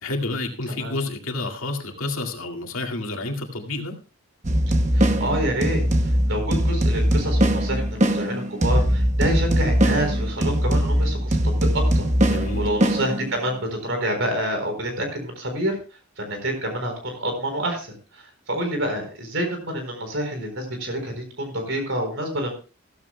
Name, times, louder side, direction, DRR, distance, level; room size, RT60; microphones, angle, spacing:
voice 1, 0.0-4.0 12.3-12.7, left 2 dB, 75° left, 4 dB, 2.1 m, -29 dB
sound 1, 4.4-13.6, equal, 35° right, 1.0 m, -21 dB
voice 2, 4.9-5.8 6.3-15.8 16.2-22.5, right 1 dB, 60° right, 5 dB, 4.2 m, -28 dB
15.0 x 14.0 x 2.2 m, 0.33 s
head